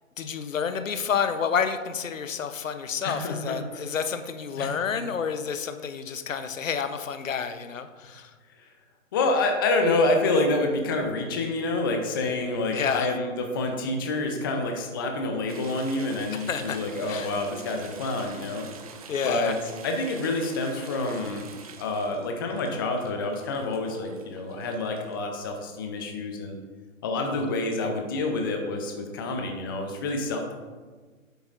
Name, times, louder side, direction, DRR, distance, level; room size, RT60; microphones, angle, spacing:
voice 1, 0.2-8.3 12.7-13.1 16.3-17.4 19.1-19.6, left 6 dB, 70° left, 9 dB, 0.9 m, -29 dB
voice 2, 3.0-3.6 4.6-4.7 9.1-18.7 19.2-19.6 19.8-26.6 27.0-30.5, left 2 dB, 15° left, 3 dB, 0.5 m, -28 dB
sound 1, 15.5-25.2, right 6 dB, 30° right, 0.5 m, -46 dB
10.0 x 8.0 x 2.5 m, 1.4 s
figure-of-eight pair, 135°, 41 cm